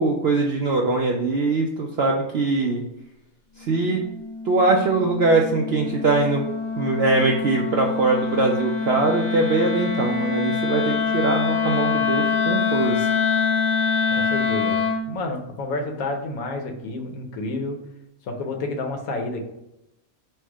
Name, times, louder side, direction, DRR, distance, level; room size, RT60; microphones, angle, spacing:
voice 1, 0.0-2.8 3.6-4.0 4.4-6.4 6.8-13.1, right 3 dB, 65° right, 0 dB, 0.6 m, -22 dB
Wind instrument woodwind instrument, 3.6-15.1, left 5 dB, 40° left, 0.8 m, -25 dB
voice 2, 14.1-17.8 18.3-19.4, left 2 dB, 75° left, 3 dB, 1.2 m, -30 dB
4.4 x 2.1 x 4.6 m, 0.87 s
omnidirectional pair, 1.5 m